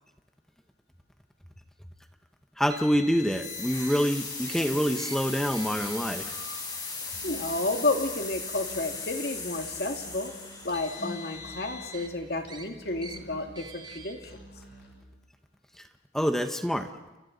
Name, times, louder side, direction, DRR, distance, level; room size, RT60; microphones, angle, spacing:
voice 1, 2.6-6.3 16.1-16.9, equal, 5° left, 6 dB, 0.8 m, -26 dB
Car, 2.7-4.0 4.4-4.6 5.0-5.2 5.5-6.1 6.9-7.1 8.1-8.2 10.4-12.1 12.5-12.7 13.0-13.2 13.6-14.1, left 1 dB, 25° right, 2.6 m, -44 dB
sound 1, 3.2-12.1, left 4 dB, 25° left, 5.7 m, -38 dB
Musical instrument, 7.1-15.0, equal, 80° left, 7.1 m, -49 dB
voice 2, 7.2-10.3 10.6-14.3, left 2 dB, 60° left, 4 dB, 2.2 m, -31 dB
29.5 x 29.5 x 4.0 m, 1.0 s
head